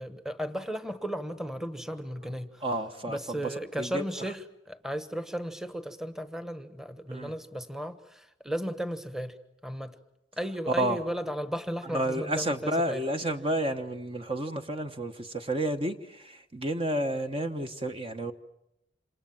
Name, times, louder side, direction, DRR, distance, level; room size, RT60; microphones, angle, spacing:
voice 1, 0.0-2.6 3.1-4.4 4.7-9.3 9.6-9.9 10.4-13.0, equal, ahead, 10 dB, 1.2 m, -35 dB
voice 2, 2.6-4.0 7.1-7.3 10.8-11.0 11.8-18.3, right 1 dB, 30° right, 6 dB, 1.1 m, -31 dB
27.5 x 27.5 x 7.3 m, 0.84 s
head